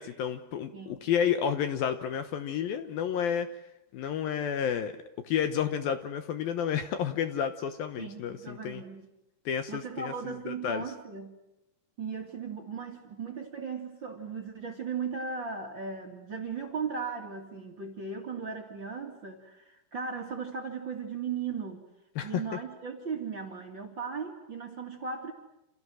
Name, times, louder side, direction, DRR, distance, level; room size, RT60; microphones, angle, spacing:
voice 1, 0.0-3.6 3.9-5.0 5.2-8.8 9.5-10.9 22.2-22.4, left 8 dB, 70° left, 9 dB, 2.6 m, -31 dB
voice 2, 8.0-9.1 9.7-11.4 12.0-21.9 22.2-25.3, right 5 dB, 35° right, 2 dB, 2.4 m, -37 dB
29.0 x 28.0 x 6.3 m, 0.90 s
omnidirectional pair, 4.8 m